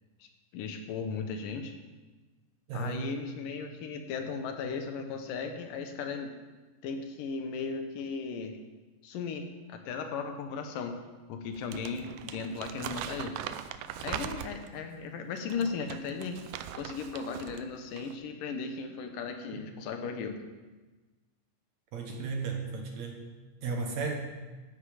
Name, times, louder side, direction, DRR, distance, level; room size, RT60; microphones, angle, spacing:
voice 1, 0.5-1.7 2.7-6.3 6.8-8.5 9.0-10.9 11.3-13.4 14.0-16.4 16.8-20.4, left 5 dB, 75° left, 5 dB, 2.6 m, -36 dB
voice 2, 2.7-3.1 19.5-19.6 21.9-23.2 23.6-24.1, right 4 dB, 65° right, 2 dB, 2.1 m, -34 dB
Crumpling crinkling, 11.5-14.8 15.4-17.6 17.9-18.2, right 10 dB, 80° right, 2.2 m, -40 dB
13.5 x 9.1 x 5.0 m, 1.2 s
omnidirectional pair, 4.1 m